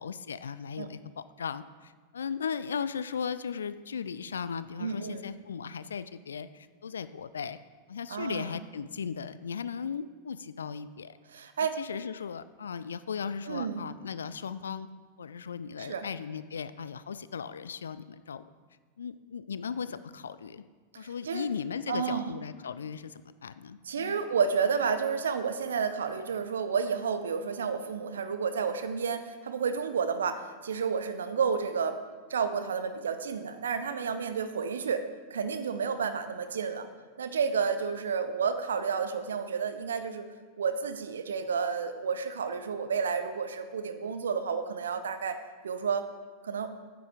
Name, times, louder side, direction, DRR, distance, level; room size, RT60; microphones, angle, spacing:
voice 1, 0.0-7.6 7.9-11.2 11.8-14.9 15.2-18.4 19.0-20.6 21.0-24.2, left 6 dB, 70° left, 14 dB, 0.3 m, -37 dB
voice 2, 4.8-5.2 8.1-8.5 11.3-11.8 13.5-13.8 15.8-16.1 21.0-21.5 21.9-22.3 23.9-32.0 32.3-35.0 35.3-36.9 37.2-40.3 40.6-45.4 45.6-46.1 46.4-46.7, right 6 dB, 65° right, 9 dB, 0.7 m, -31 dB
9.3 x 8.1 x 4.8 m, 1.5 s
figure-of-eight pair, 90°, 0 cm